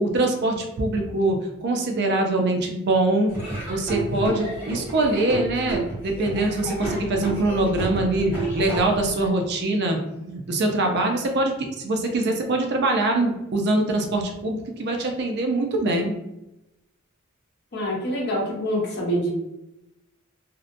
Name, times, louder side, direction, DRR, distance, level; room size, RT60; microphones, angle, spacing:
voice 1, 0.0-1.4 1.6-16.1, right 2 dB, 50° right, 3 dB, 0.4 m, -23 dB
Laughter / Drum, 3.3-9.3, right 2 dB, 10° right, 1.1 m, -31 dB
voice 2, 17.7-19.3, equal, 50° left, -4 dB, 1.0 m, -25 dB
2.6 x 2.1 x 2.5 m, 0.91 s
head